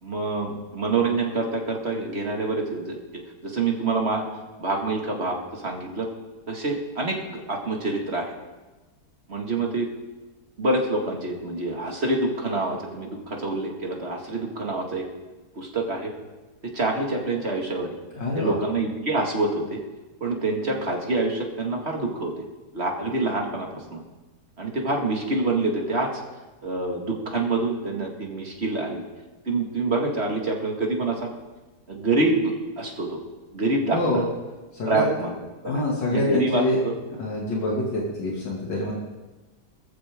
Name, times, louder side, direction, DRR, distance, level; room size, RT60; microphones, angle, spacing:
voice 1, 0.0-4.3 4.6-6.1 6.5-8.3 9.3-9.9 10.6-15.0 15.6-16.1 16.6-17.9 18.4-19.8 20.2-22.4 22.7-24.0 24.6-26.2 26.6-29.0 29.4-31.3 31.9-33.2 33.5-34.2 34.9-35.3 35.6-37.0, right 2 dB, 35° right, 0 dB, 2.3 m, -26 dB
voice 2, 18.2-18.5 33.9-34.2 34.7-35.0 35.6-36.8 37.2-38.9, left 1 dB, 90° left, -4 dB, 3.1 m, -26 dB
21.5 x 14.5 x 3.7 m, 1.2 s
omnidirectional pair, 1.9 m